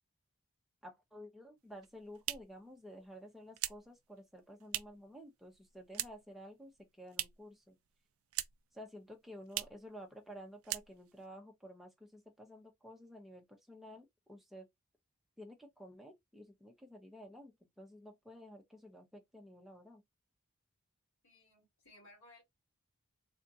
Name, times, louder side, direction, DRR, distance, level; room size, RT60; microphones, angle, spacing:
voice 1, 0.8-7.8 8.7-14.7 15.4-20.0, equal, ahead, 0.8 m, -52 dB
sound 1, 1.7-5.1 5.4-6.4 6.6-7.6 7.8-8.8 9.0-9.1 9.5-9.9 10.2-10.4 10.6-11.3, right 15 dB, 70° right, 0.4 m, -42 dB
voice 2, 21.2-22.4, left 2 dB, 60° left, 2.2 m, -60 dB
3.5 x 2.7 x 2.7 m
head